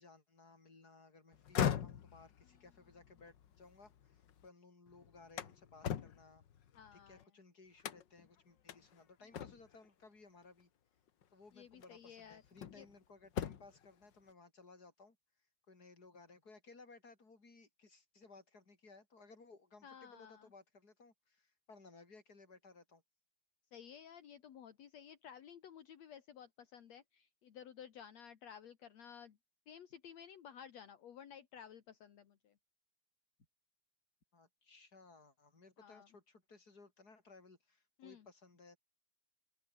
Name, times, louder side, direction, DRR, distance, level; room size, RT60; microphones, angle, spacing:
voice 1, 0.0-6.4 6.9-10.7 11.3-15.2 15.7-23.0 34.3-38.8, left 3 dB, 30° left, 5.1 m, -60 dB
sound 1, 1.3-4.5 4.9-7.2 7.8-8.3 8.7-8.8 9.3-9.9 11.1-11.2 11.8-12.9 13.3-13.9, left 9 dB, 50° left, 1.5 m, -40 dB
voice 2, 6.7-7.3 11.5-12.4 12.7-12.9 19.8-20.5 23.7-29.4 29.7-32.5 35.8-36.1 38.0-38.3, left 8 dB, 65° left, 2.9 m, -54 dB
open air
omnidirectional pair, 3.3 m